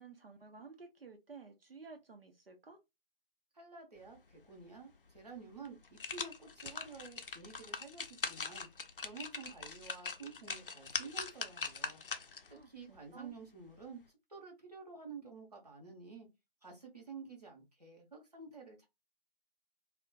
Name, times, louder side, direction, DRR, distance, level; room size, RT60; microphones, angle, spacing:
voice 1, 0.0-2.8 12.5-13.4, right 4 dB, 75° right, 0.6 m, -53 dB
voice 2, 3.5-8.7 9.0-12.0 12.5-14.0 14.3-16.3 16.6-18.9, right 4 dB, 45° right, 0.7 m, -51 dB
sound 1, 5.1-5.2 5.6-12.5 12.9-13.0, left 5 dB, 65° left, 0.4 m, -42 dB
2.4 x 2.1 x 2.5 m
figure-of-eight pair, 175°, 29 cm